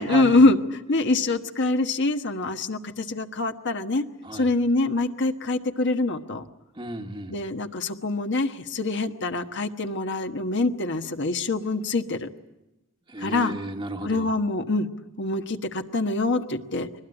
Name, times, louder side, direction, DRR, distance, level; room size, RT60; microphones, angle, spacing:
voice 1, 0.0-4.0 4.3-6.4 7.3-12.3 13.2-13.5 14.0-14.9 15.2-16.9, left 2 dB, 60° left, 7 dB, 1.3 m, -24 dB
voice 2, 6.8-7.4 13.1-14.3, right 1 dB, 25° right, 1 dB, 1.4 m, -33 dB
22.5 x 20.0 x 9.9 m, 0.98 s
head